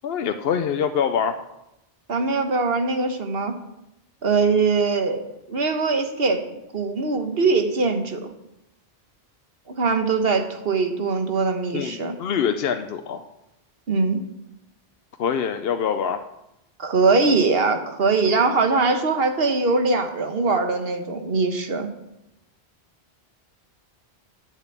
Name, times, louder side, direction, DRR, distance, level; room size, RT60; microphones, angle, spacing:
voice 1, 0.0-1.4 11.7-13.2 15.2-16.2, left 7 dB, 70° left, 7 dB, 0.9 m, -24 dB
voice 2, 2.1-3.5 4.2-5.2 5.5-6.4 6.7-8.3 9.7-12.1 13.9-14.2 16.8-21.9, right 4 dB, 70° right, 6 dB, 1.4 m, -22 dB
8.2 x 6.9 x 8.4 m, 0.87 s
omnidirectional pair, 1.0 m